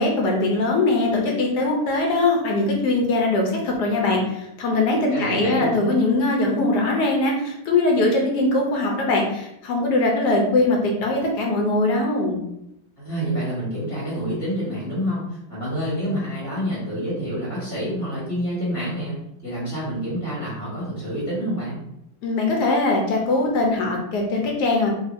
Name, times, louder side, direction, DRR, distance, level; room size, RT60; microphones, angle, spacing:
voice 1, 0.0-12.4 22.2-24.9, left 2 dB, 65° left, 0 dB, 1.1 m, -21 dB
voice 2, 5.1-5.7 13.0-19.2 19.4-21.8, equal, 5° left, -8 dB, 0.9 m, -27 dB
4.0 x 2.9 x 2.6 m, 0.81 s
omnidirectional pair, 2.3 m